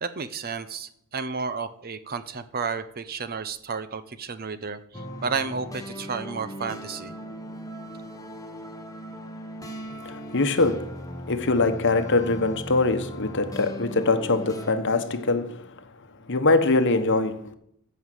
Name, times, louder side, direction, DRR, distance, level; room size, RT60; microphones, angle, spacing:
voice 1, 0.0-4.8 5.2-7.1, right 5 dB, 45° right, 0.8 m, -32 dB
sound 1, 4.9-14.7, equal, 15° left, 1.3 m, -38 dB
voice 2, 9.9-17.5, left 3 dB, 55° left, 1.1 m, -24 dB
14.5 x 5.5 x 7.7 m
head